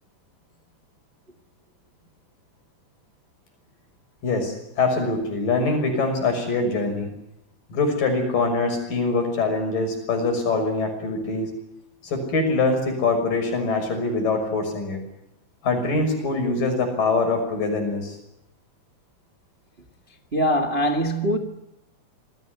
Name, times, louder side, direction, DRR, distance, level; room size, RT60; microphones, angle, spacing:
voice 1, 4.2-7.1 7.7-11.5 12.0-15.0 15.6-18.2, left 3 dB, 50° left, 7.7 m, -23 dB
voice 2, 20.3-21.4, equal, 85° right, 0.5 m, -22 dB
27.5 x 21.0 x 7.9 m
omnidirectional pair, 4.9 m